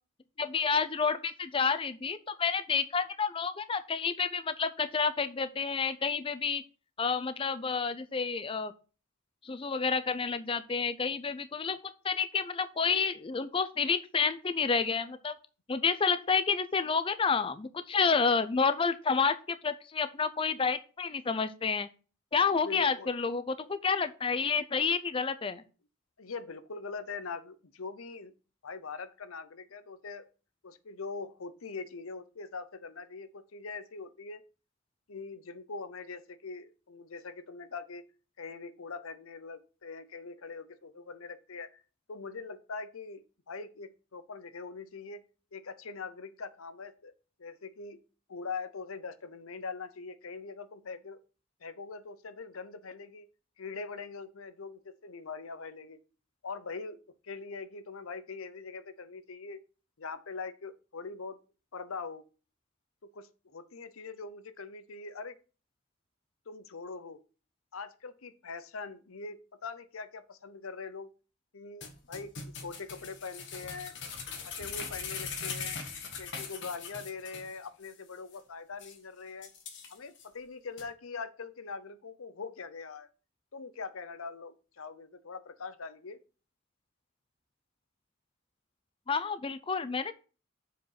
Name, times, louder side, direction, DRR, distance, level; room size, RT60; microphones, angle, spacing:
voice 1, 0.4-6.6 7.0-8.7 9.4-11.8 12.0-15.4 15.7-21.9 22.3-25.6 89.1-90.1, left 5 dB, 25° left, 11 dB, 0.4 m, -29 dB
voice 2, 22.6-23.1 26.2-28.3 28.6-30.3 30.6-34.4 35.1-38.0 38.4-41.8 42.1-45.2 45.5-47.1 47.4-48.0 48.3-51.2 51.6-53.3 53.6-56.0 56.4-57.0 57.2-59.6 60.0-61.4 61.7-62.2 63.1-65.4 66.5-67.2 67.7-71.1 71.5-73.9 74.4-75.8 76.2-79.5 79.9-83.1 83.5-86.2, left 4 dB, 90° left, 13 dB, 0.8 m, -42 dB
sound 1, 71.8-77.5 77.8-77.9 78.3-78.4 78.8-79.0 79.4-80.2 80.8-80.9, left 5 dB, 60° left, 1.5 m, -40 dB
7.1 x 5.1 x 5.7 m, 0.35 s
head